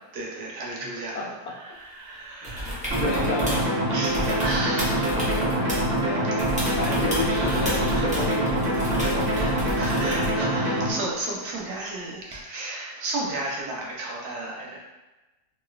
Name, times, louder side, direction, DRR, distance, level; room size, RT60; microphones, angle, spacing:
voice 1, 0.1-1.3 1.6-2.9 3.8-5.2 6.0-6.3 6.6-7.0 7.3-8.3 8.9-14.8, right 2 dB, 80° right, -3 dB, 1.2 m, -34 dB
voice 2, 0.8-1.5 2.4-2.7 3.0-3.8 5.1-10.2, left 3 dB, 80° left, -2 dB, 1.2 m, -33 dB
sound 1, 2.4-3.7 4.0-6.0 6.4-10.4 12.3-12.4, equal, 10° right, 0.3 m, -31 dB
sound 2, 2.9-10.9, right 1 dB, 55° right, 1.2 m, -25 dB
3.0 x 2.9 x 2.3 m, 1.1 s
omnidirectional pair, 1.6 m